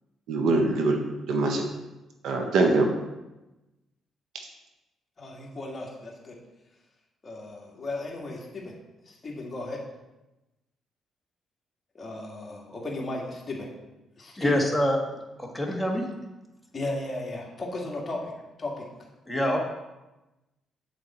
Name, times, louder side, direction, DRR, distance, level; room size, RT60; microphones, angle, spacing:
voice 1, 0.3-1.6 2.2-2.9, right 3 dB, 80° right, 3 dB, 1.4 m, -23 dB
voice 2, 5.2-6.4 7.2-8.7 9.1-9.8 11.9-13.7 14.2-14.5 16.7-18.2 18.6-18.8, left 2 dB, 30° left, -2 dB, 2.4 m, -35 dB
voice 3, 14.4-15.0 15.4-16.0 19.3-19.6, equal, ahead, 0 dB, 1.9 m, -25 dB
8.4 x 7.5 x 4.5 m, 1.0 s
cardioid pair, 90°, 0 cm